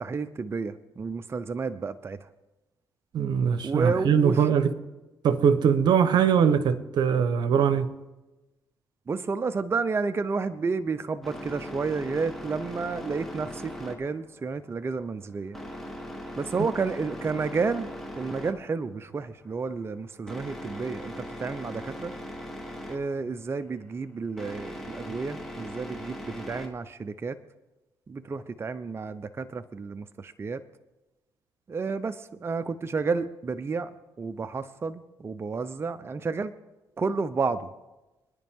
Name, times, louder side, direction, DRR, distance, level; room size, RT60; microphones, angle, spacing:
voice 1, 0.0-2.3 3.6-4.5 9.1-15.6 16.4-17.9 18.2-22.1 22.9-27.4 28.1-30.6 31.7-33.9 34.2-36.5 37.0-37.7, right 4 dB, 35° right, 0.6 m, -31 dB
voice 2, 3.1-4.7 5.2-7.9, right 7 dB, 70° right, 1.0 m, -22 dB
sound 1, 11.2-26.7, equal, 5° left, 3.1 m, -40 dB
25.5 x 10.0 x 3.7 m
cardioid pair, 80°, 8 cm